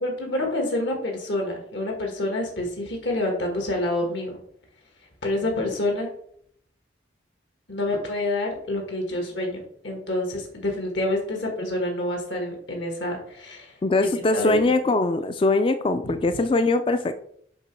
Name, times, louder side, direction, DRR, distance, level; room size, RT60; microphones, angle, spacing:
voice 1, 0.0-4.4 5.2-6.1 7.7-13.8 14.3-14.7 16.0-16.1, left 1 dB, 75° left, 1 dB, 1.8 m, -27 dB
voice 2, 13.8-17.2, left 2 dB, 30° left, 9 dB, 0.3 m, -22 dB
7.2 x 3.0 x 6.1 m, 0.64 s
head